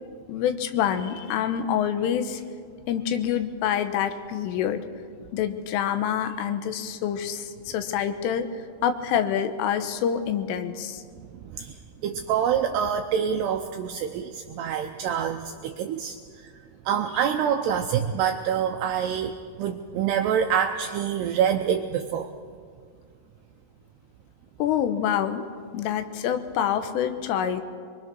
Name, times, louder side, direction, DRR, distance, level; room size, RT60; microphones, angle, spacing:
voice 1, 0.3-2.4 2.9-4.9 5.3-11.0 24.6-25.5 25.7-27.6, left 9 dB, 85° left, 9 dB, 3.6 m, -26 dB
voice 2, 11.4-16.5 16.9-22.3, right 8 dB, 85° right, 5 dB, 2.4 m, -26 dB
24.0 x 23.0 x 6.2 m, 2.1 s
omnidirectional pair, 5.7 m